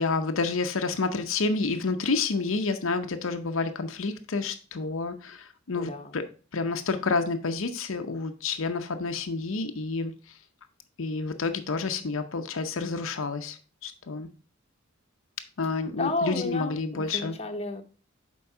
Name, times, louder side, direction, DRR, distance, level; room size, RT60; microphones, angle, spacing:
voice 1, 0.0-6.3 6.5-10.4 11.0-14.3 15.6-17.3, left 4 dB, 70° left, 0.7 m, -29 dB
voice 2, 5.7-6.1 15.9-17.8, left 2 dB, 30° left, 0.9 m, -32 dB
7.0 x 4.6 x 4.8 m
head